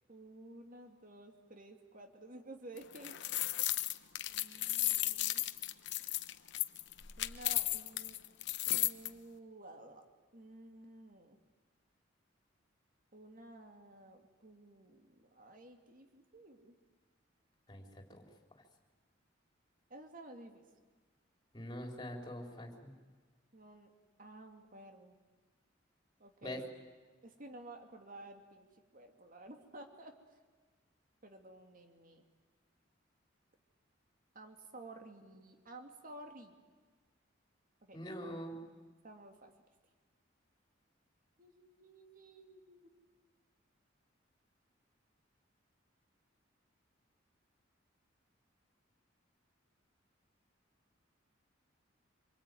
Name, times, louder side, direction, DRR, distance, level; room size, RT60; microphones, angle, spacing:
voice 1, 0.1-3.2 4.3-5.4 7.2-8.2 8.7-10.0 10.3-11.4 13.1-16.8 19.9-20.6 23.5-23.9 24.2-25.2 26.2-26.7 27.2-28.7 28.9-30.1 31.2-32.2 34.3-36.6 37.9-38.0 39.0-39.5 41.4-42.8, right 2 dB, 45° right, 5 dB, 2.5 m, -53 dB
sound 1, 2.8-9.1, left 15 dB, 60° left, 1.0 m, -34 dB
voice 2, 17.7-18.2 18.5-18.6 21.5-22.9 26.4-26.6 37.9-38.6, equal, 20° left, 2 dB, 3.9 m, -44 dB
26.0 x 23.5 x 9.4 m, 1.4 s
head